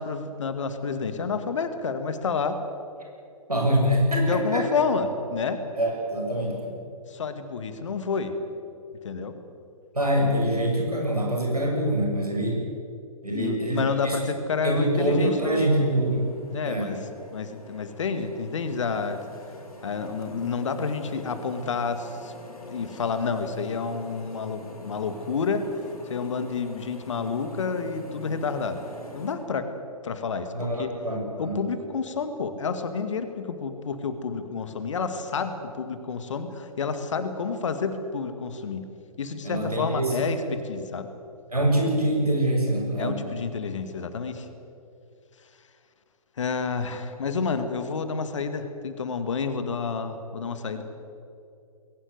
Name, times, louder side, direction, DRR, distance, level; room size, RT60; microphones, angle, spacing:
voice 1, 0.0-2.6 4.2-5.6 7.1-8.3 9.0-9.3 13.3-15.7 16.5-17.0 17.3-19.2 19.8-22.3 22.7-25.7 26.1-28.8 29.1-29.7 30.0-30.9 31.4-38.8 39.2-41.1 43.0-44.5 46.4-50.8, left 5 dB, 55° left, 9 dB, 2.1 m, -29 dB
voice 2, 3.5-4.7 5.8-6.8 9.9-12.6 13.2-14.2 14.6-16.3 16.6-16.9 30.5-31.6 39.4-40.2 41.5-43.2, right 1 dB, 80° right, 0 dB, 6.9 m, -24 dB
sound 1, 14.7-29.3, equal, 70° left, 5.8 m, -45 dB
21.0 x 18.5 x 8.2 m, 2.6 s
figure-of-eight pair, 125°, 19 cm